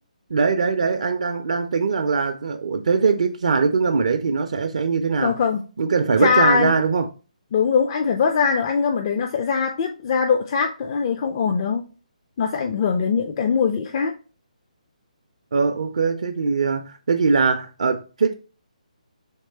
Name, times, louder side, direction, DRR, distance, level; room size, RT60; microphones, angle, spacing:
voice 1, 0.3-5.4 5.8-7.1 15.5-18.3, right 5 dB, 55° right, 0.4 m, -21 dB
voice 2, 5.2-5.6 6.2-6.7 7.5-11.8 12.4-14.1, left 6 dB, 30° left, 0.4 m, -21 dB
3.6 x 3.1 x 4.2 m
figure-of-eight pair, 140°, 4 cm